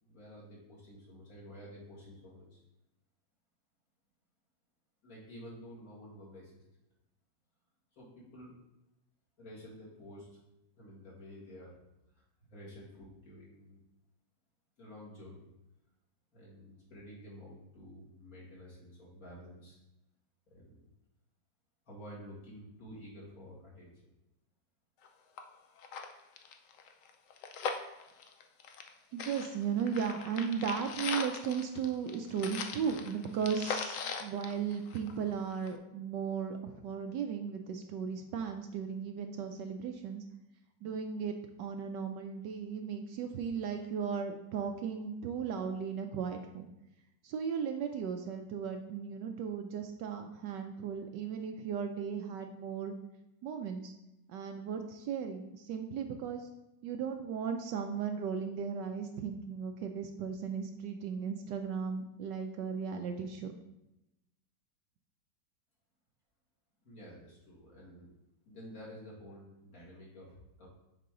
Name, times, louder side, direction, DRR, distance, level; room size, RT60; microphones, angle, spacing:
voice 1, 0.0-2.6 5.0-6.6 7.9-8.6 9.4-10.4 10.8-11.8 12.2-12.3 12.5-13.8 14.8-15.5 16.3-19.8 20.5-20.8 21.9-24.1 66.8-68.1 68.4-70.7, equal, 50° left, -6 dB, 2.5 m, -51 dB
sound 1, 25.0-25.1 25.4-25.5 25.8-28.9 29.2-35.3 35.7-35.8, left 6 dB, 80° left, 0.7 m, -40 dB
voice 2, 29.1-40.2 40.8-46.7 47.2-52.9 53.4-53.9 54.3-56.5 56.8-63.5, right 6 dB, 75° right, 5 dB, 1.1 m, -36 dB
6.7 x 4.6 x 3.7 m, 0.91 s
omnidirectional pair, 2.1 m